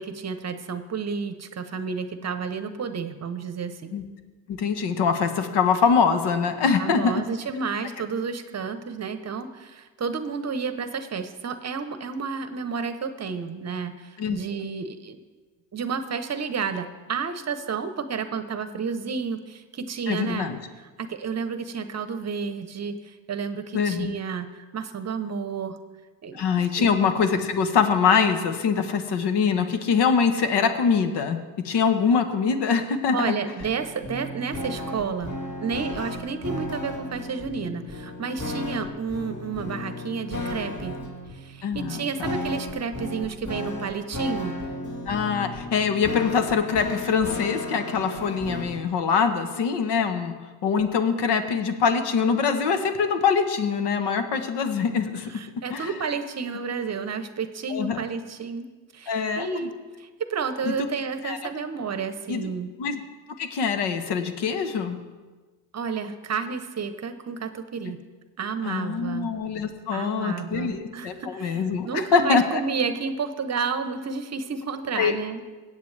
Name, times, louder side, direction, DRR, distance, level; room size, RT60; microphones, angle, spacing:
voice 1, 0.0-3.9 6.8-15.2 15.7-20.5 20.8-25.8 26.2-27.0 33.1-35.3 35.6-41.0 41.3-44.6 55.3-58.7 58.9-59.7 60.0-62.7 65.7-68.0 68.4-69.3 69.9-75.4, right 5 dB, 35° right, 10 dB, 0.9 m, -31 dB
voice 2, 4.5-7.2 14.2-14.4 20.1-20.6 23.7-24.1 26.3-33.4 41.6-42.3 45.1-50.3 50.6-55.3 55.7-55.9 57.7-58.0 59.1-59.7 60.6-60.8 61.2-61.4 62.3-62.5 62.8-63.0 63.4-65.0 68.6-72.6 74.9-75.1, left 6 dB, 60° left, 8 dB, 1.2 m, -24 dB
sound 1, 33.6-48.9, left 1 dB, 40° left, 2.9 m, -34 dB
16.5 x 8.2 x 3.3 m, 1.3 s
supercardioid pair, 80°, 46 cm